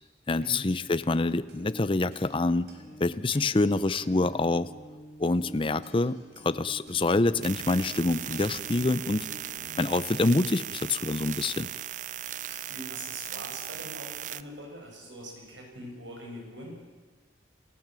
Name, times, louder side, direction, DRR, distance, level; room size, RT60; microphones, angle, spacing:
voice 1, 0.3-2.7 3.0-4.7 5.2-6.2 6.4-9.3 9.8-11.7, left 2 dB, 30° left, 14 dB, 0.6 m, -26 dB
sound 1, 1.5-10.8, equal, 65° right, 4.5 m, -48 dB
sound 2, 7.4-14.4, right 11 dB, 45° right, 0.5 m, -38 dB
voice 2, 12.4-16.7, equal, 85° right, 0 dB, 7.1 m, -43 dB
28.0 x 15.0 x 7.6 m, 1.4 s
head